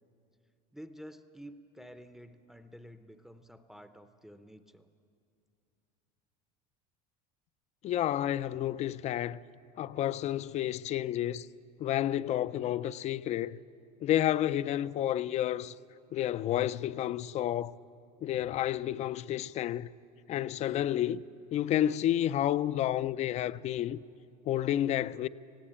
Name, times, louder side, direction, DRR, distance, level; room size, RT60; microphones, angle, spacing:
voice 1, 0.7-4.9, equal, ahead, 0.6 m, -50 dB
voice 2, 7.8-9.4 9.8-11.5 11.8-13.6 14.0-15.7 16.1-17.8 18.2-19.9 20.3-21.2 21.5-24.0 24.5-25.3, left 12 dB, 35° left, 0.4 m, -30 dB
20.5 x 15.0 x 8.7 m
cardioid pair, 135°, 19 cm